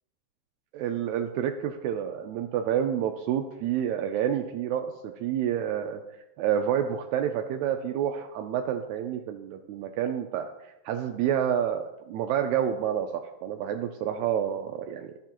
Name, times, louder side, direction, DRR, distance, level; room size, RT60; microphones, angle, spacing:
voice 1, 0.7-6.0 6.4-10.5 10.9-15.1, right 9 dB, 80° right, 5 dB, 1.9 m, -29 dB
13.0 x 6.4 x 3.0 m, 0.95 s
omnidirectional pair, 3.4 m